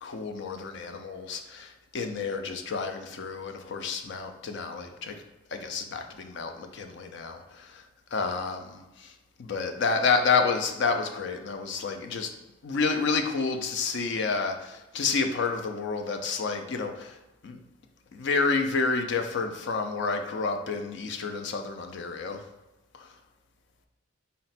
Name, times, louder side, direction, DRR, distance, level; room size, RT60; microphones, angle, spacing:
voice 1, 0.0-5.2 5.5-7.8 8.1-9.1 9.4-12.3 12.6-17.2 17.4-17.6 18.1-22.4 22.9-23.1, left 4 dB, 55° left, 5 dB, 0.4 m, -29 dB
3.9 x 2.1 x 4.1 m, 1.1 s
head